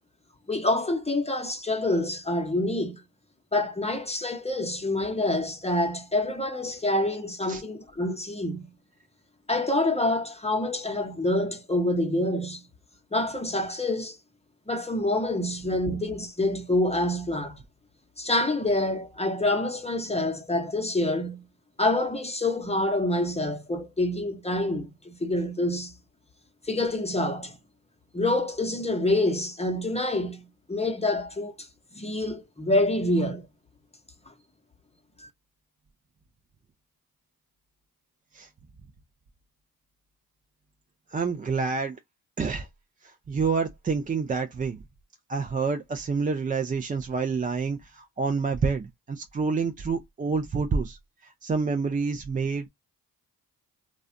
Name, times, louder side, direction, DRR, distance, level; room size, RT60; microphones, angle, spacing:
voice 1, 0.5-3.0 3.5-8.7 9.5-12.6 13.1-14.2 14.7-17.6 18.2-21.4 21.8-25.9 26.6-27.6 28.1-30.4 30.7-31.7 32.0-33.5 34.3-34.4 35.2-35.3, left 1 dB, 15° left, 0.7 m, -27 dB
voice 2, 41.1-42.0 42.4-42.7 43.0-44.8 45.3-51.0 51.4-52.7, right 4 dB, 20° right, 0.4 m, -28 dB
2.4 x 2.1 x 2.5 m
supercardioid pair, 50°, 40 cm